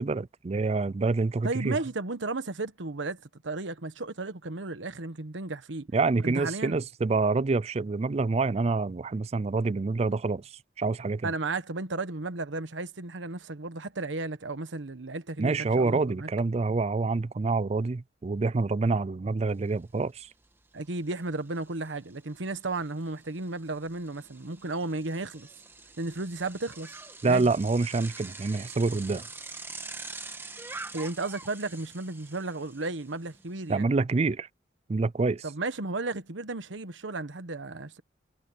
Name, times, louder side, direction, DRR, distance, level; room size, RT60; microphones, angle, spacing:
voice 1, 0.0-1.8 5.9-10.5 10.8-11.3 15.4-20.3 27.2-29.3 33.7-34.5 34.9-35.4, right 3 dB, 35° right, 0.4 m, -27 dB
voice 2, 1.4-5.9 6.2-6.8 11.2-16.3 20.7-25.5 26.0-26.9 27.2-27.5 30.9-33.9 35.4-38.0, right 2 dB, 85° right, 1.2 m, -34 dB
Bicycle, 19.5-19.6 20.0-33.7, right 3 dB, 10° right, 1.4 m, -45 dB
head